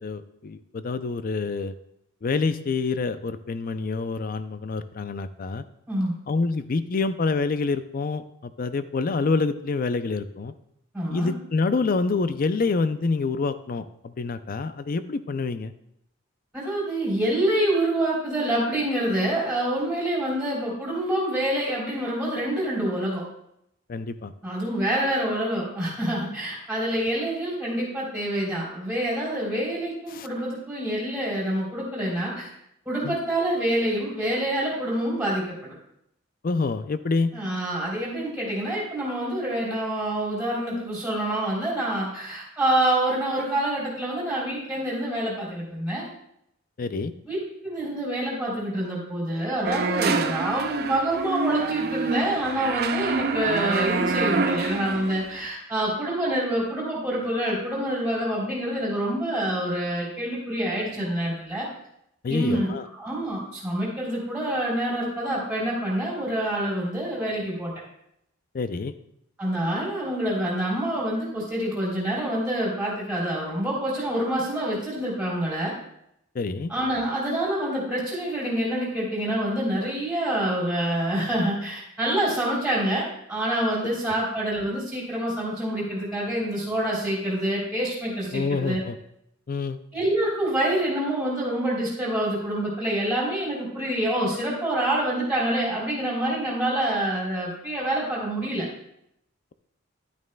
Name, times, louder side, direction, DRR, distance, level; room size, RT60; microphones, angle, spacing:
voice 1, 0.0-1.7 2.2-5.6 6.3-10.5 11.1-15.7 23.9-24.3 30.1-30.3 33.0-33.2 36.4-37.3 46.8-47.1 62.2-62.8 68.5-68.9 76.4-76.7 88.3-89.0 89.5-89.8, left 4 dB, 40° left, 12 dB, 0.4 m, -27 dB
voice 2, 10.9-11.3 16.5-23.2 24.4-32.5 32.8-35.7 37.3-46.1 47.2-47.4 47.6-61.7 62.3-62.7 63.0-67.7 69.4-75.7 76.7-88.8 89.9-98.7, right 1 dB, 5° right, -6 dB, 3.4 m, -26 dB
sound 1, 49.6-55.4, right 4 dB, 45° right, 0.5 m, -27 dB
11.0 x 9.4 x 2.2 m, 0.76 s
head